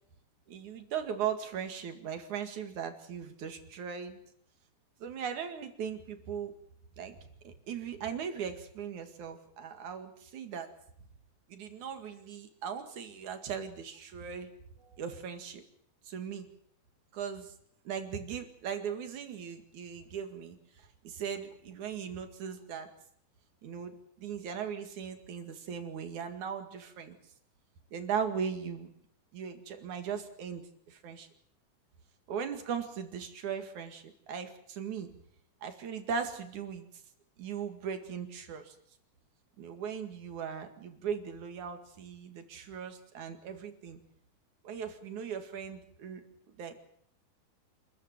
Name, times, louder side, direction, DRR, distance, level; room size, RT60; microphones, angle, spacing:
voice 1, 0.5-4.2 5.0-6.5 7.0-7.2 7.4-10.7 11.5-14.5 14.8-15.6 16.1-16.5 17.1-17.5 17.9-20.6 21.0-22.9 23.6-27.2 27.9-28.9 29.3-30.6 30.9-31.3 32.3-35.1 35.6-36.9 37.4-38.7 39.6-44.0 44.6-46.2 46.6-46.7, right 7 dB, 65° right, 7 dB, 3.4 m, -38 dB
27.0 x 14.0 x 9.1 m, 0.68 s
omnidirectional pair, 3.7 m